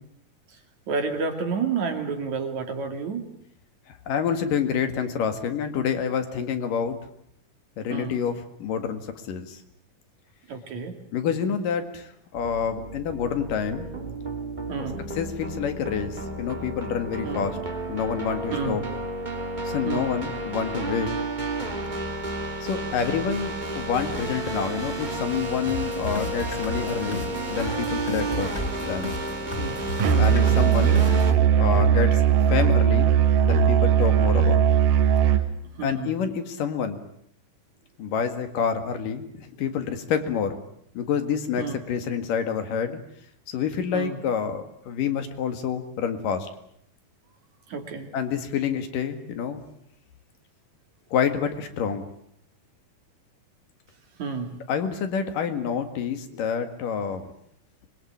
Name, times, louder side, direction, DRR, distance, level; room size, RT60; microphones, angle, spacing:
voice 1, 0.9-3.3 7.9-8.2 10.5-11.0 14.7-15.0 17.3-17.4 18.5-18.8 19.9-20.1 28.3-28.5 29.6-29.8 30.0-30.3 35.8-36.1 41.6-41.8 43.9-44.2 47.7-48.1 54.2-54.5, right 5 dB, 60° right, 5 dB, 3.9 m, -30 dB
voice 2, 3.9-7.0 7.8-9.0 9.3-9.6 11.1-13.9 15.1-17.6 17.9-18.8 19.7-21.1 22.6-28.5 28.8-29.1 30.2-31.0 31.6-33.2 33.4-34.7 35.8-37.0 38.0-40.6 41.0-43.0 43.5-46.5 48.1-49.7 51.1-52.1 54.7-57.3, left 7 dB, 85° left, 8 dB, 3.6 m, -28 dB
sound 1, 12.4-31.3, right 2 dB, 20° right, 1.4 m, -32 dB
sound 2, 25.7-33.6, left 1 dB, 20° left, 3.4 m, -35 dB
Musical instrument, 30.0-35.5, right 8 dB, 85° right, 2.9 m, -19 dB
25.0 x 21.5 x 8.7 m, 0.70 s
omnidirectional pair, 3.7 m